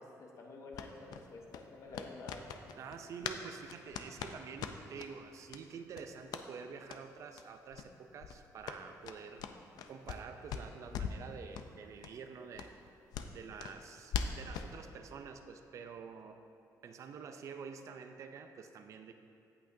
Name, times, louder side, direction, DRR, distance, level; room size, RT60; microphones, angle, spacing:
voice 1, 0.0-2.4, left 3 dB, 50° left, 1 dB, 1.1 m, -50 dB
sound 1, 0.7-3.4 3.7-5.1 5.5-5.6 5.9-6.5 6.8-7.0 7.3-7.4 7.7-7.9 8.2-10.2 10.5-11.2 11.5-11.7 12.0-12.1 12.5-14.7, left 7 dB, 80° left, 0.5 m, -41 dB
voice 2, 2.8-9.4 9.9-12.7 13.3-16.4 16.8-19.1, right 6 dB, 50° right, 7 dB, 0.5 m, -48 dB
17.0 x 5.9 x 2.7 m, 2.6 s
cardioid pair, 150°, 7 cm